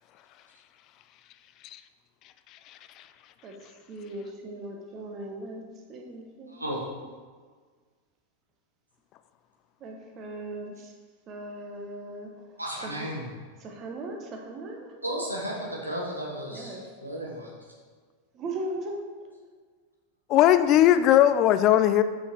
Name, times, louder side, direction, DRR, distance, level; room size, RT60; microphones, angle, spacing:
voice 1, 3.4-7.1 9.8-10.9 11.3-13.1 13.6-14.9 16.5-16.9 18.3-19.1, right 1 dB, 30° right, 1 dB, 1.2 m, -39 dB
voice 2, 12.6-13.2 15.0-17.5, equal, 85° right, -3 dB, 1.6 m, -34 dB
voice 3, 20.3-22.0, left 12 dB, 35° left, 12 dB, 0.3 m, -18 dB
6.4 x 5.7 x 4.6 m, 1.5 s
figure-of-eight pair, 90°, 0 cm